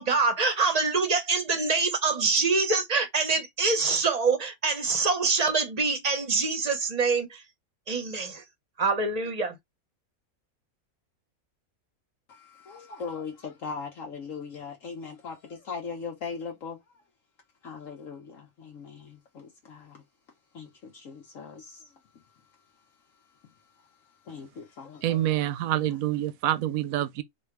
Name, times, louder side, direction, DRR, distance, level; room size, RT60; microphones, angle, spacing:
voice 1, 0.0-7.4 7.9-8.4 8.8-9.6, right 4 dB, 35° right, 0.8 m, -25 dB
voice 2, 12.3-16.8 17.6-20.0 20.5-21.8 24.3-25.3, left 5 dB, 65° left, 1.3 m, -39 dB
voice 3, 25.0-27.2, right 13 dB, 75° right, 1.0 m, -27 dB
3.6 x 2.6 x 4.6 m
omnidirectional pair, 1.5 m